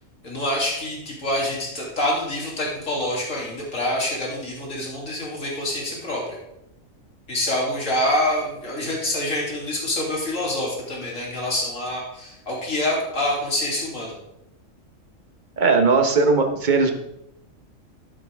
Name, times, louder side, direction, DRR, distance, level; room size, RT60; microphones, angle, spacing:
voice 1, 0.2-6.4 7.3-14.1, left 1 dB, 75° left, -3 dB, 3.3 m, -26 dB
voice 2, 15.6-16.9, right 4 dB, 40° right, 5 dB, 1.2 m, -18 dB
11.5 x 8.8 x 3.5 m, 0.84 s
omnidirectional pair, 1.4 m